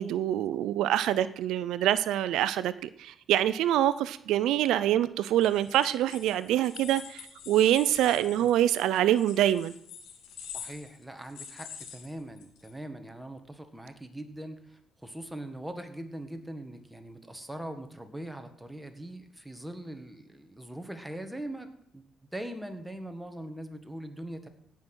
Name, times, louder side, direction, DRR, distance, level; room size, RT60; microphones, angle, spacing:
voice 1, 0.0-9.7, right 12 dB, 85° right, 0.4 m, -25 dB
sound 1, 5.3-12.7, left 7 dB, 85° left, 2.6 m, -46 dB
voice 2, 10.5-22.0 22.3-24.5, right 1 dB, 5° right, 1.7 m, -41 dB
16.5 x 5.9 x 6.1 m
cardioid pair, 90°, 0 cm